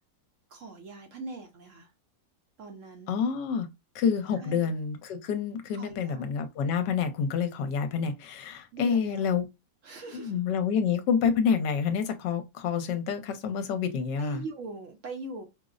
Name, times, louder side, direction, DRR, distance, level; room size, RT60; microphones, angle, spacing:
voice 1, 0.5-1.9 2.6-3.2 4.4-4.6 5.7-6.2 8.7-9.3 9.8-10.4 14.2-15.4, right 3 dB, 60° right, 0.8 m, -41 dB
voice 2, 3.1-3.7 3.9-9.5 10.1-14.4, left 6 dB, 75° left, 1.2 m, -28 dB
5.0 x 2.0 x 2.4 m
omnidirectional pair, 2.0 m